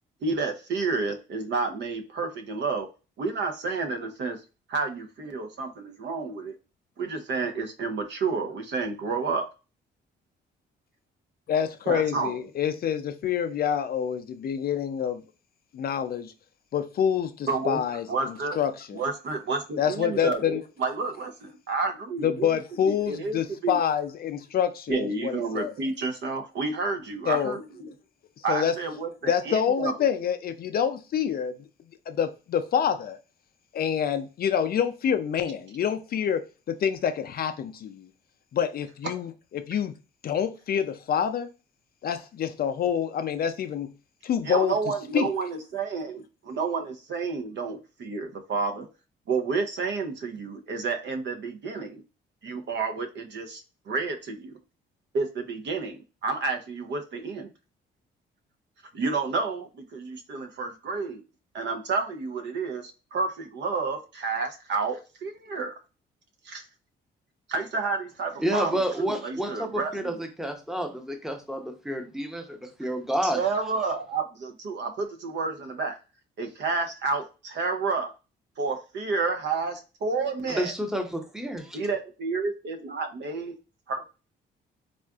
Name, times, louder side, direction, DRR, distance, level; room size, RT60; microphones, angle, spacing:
voice 1, 0.2-2.9 3.2-4.4 4.7-6.5 7.0-9.5 11.9-12.4 17.5-17.8 18.1-18.6 18.9-22.6 22.8-23.4 23.6-23.8 24.9-27.9 28.4-29.9 44.4-48.9 49.3-52.0 52.4-53.6 53.9-54.5 55.1-57.5 58.9-61.2 61.5-65.8 66.4-66.6 67.5-70.2 73.2-76.0 76.4-78.1 78.6-80.7 81.7-83.5 83.9-84.1, right 4 dB, 65° right, 0.7 m, -30 dB
voice 2, 11.5-15.2 15.7-16.3 16.7-18.1 18.6-19.0 19.8-20.6 22.2-25.7 27.3-27.6 28.5-28.8 29.3-31.6 32.1-33.2 33.7-38.1 38.5-39.9 40.2-41.5 42.0-43.9 44.2-44.7 45.1-45.3, left 8 dB, 50° left, 0.4 m, -27 dB
voice 3, 68.4-73.4 80.5-81.8, equal, ahead, 0.7 m, -30 dB
3.6 x 2.4 x 2.3 m
cardioid pair, 90°, 20 cm